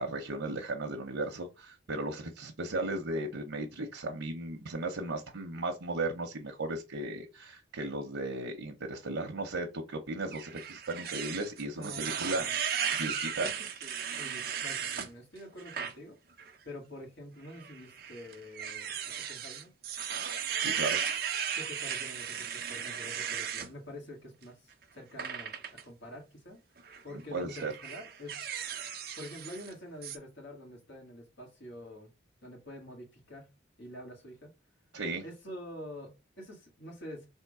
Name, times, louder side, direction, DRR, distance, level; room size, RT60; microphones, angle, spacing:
voice 1, 0.0-12.5 12.9-13.5 20.6-21.0 27.3-27.7 34.9-35.2, right 2 dB, 90° right, 0.8 m, -36 dB
sound 1, 10.3-15.1 15.6-15.9 16.4-16.5 17.5-23.7 25.2-25.8 26.8-27.0 27.5-29.7 30.0-30.2, right 8 dB, 50° right, 0.6 m, -36 dB
voice 2, 11.7-12.6 13.0-16.2 16.6-19.7 21.5-26.6 27.0-28.6 29.2-32.1 32.4-33.5 33.8-34.5 35.2-37.3, left 1 dB, 70° left, 2.0 m, -47 dB
3.6 x 3.0 x 4.8 m
head